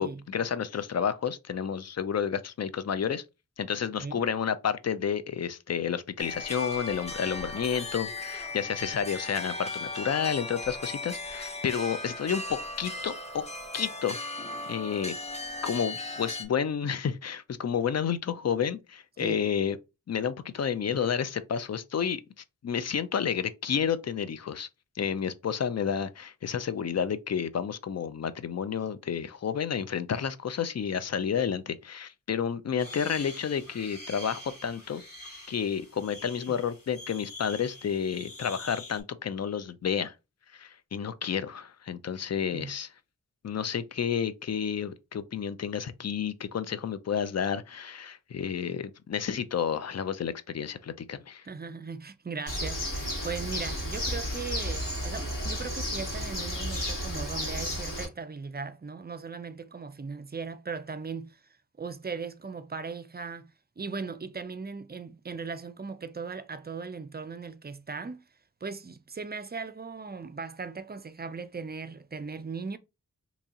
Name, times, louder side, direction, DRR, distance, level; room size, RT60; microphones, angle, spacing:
voice 1, 0.0-3.2 3.6-13.4 13.7-14.2 14.7-15.1 15.6-19.8 20.1-22.2 22.6-24.7 25.0-35.0 35.5-40.1 40.5-42.9 43.4-51.5, left 7 dB, 50° left, 0.4 m, -30 dB
sound 1, 6.2-16.4, left 2 dB, 20° left, 0.8 m, -37 dB
sound 2, 32.8-39.0, left 2 dB, 85° left, 1.8 m, -45 dB
voice 2, 51.4-61.4 61.8-63.5 63.8-68.3 68.6-72.8, right 5 dB, 30° right, 0.4 m, -38 dB
Bird, 52.5-58.0, equal, 70° left, 1.9 m, -32 dB
2.9 x 2.7 x 3.5 m
wide cardioid pair, 60°, 33 cm